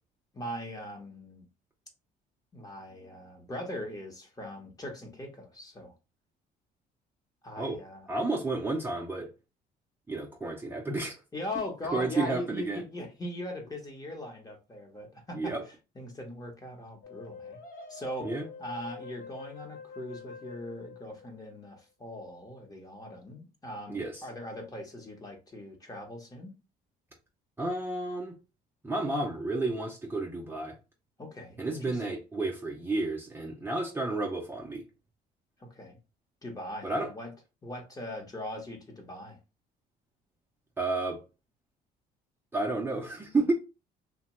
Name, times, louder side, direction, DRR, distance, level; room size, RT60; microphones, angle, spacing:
voice 1, 0.3-1.5 2.5-5.9 7.4-8.1 11.3-17.6 17.9-18.3 18.6-26.5 31.2-32.0 35.6-36.0 36.4-37.3 37.6-39.4, left 1 dB, 20° left, 0.9 m, -40 dB
voice 2, 8.1-9.3 10.1-11.1 11.9-12.8 15.3-15.6 18.2-18.4 23.9-24.2 27.6-28.3 28.8-30.8 31.6-34.8 36.8-37.1 40.8-41.2 42.5-43.5, right 2 dB, 15° right, 0.5 m, -31 dB
sound 1, 17.0-21.8, left 5 dB, 55° left, 0.7 m, -46 dB
2.9 x 2.1 x 2.9 m
cardioid pair, 110°, 17 cm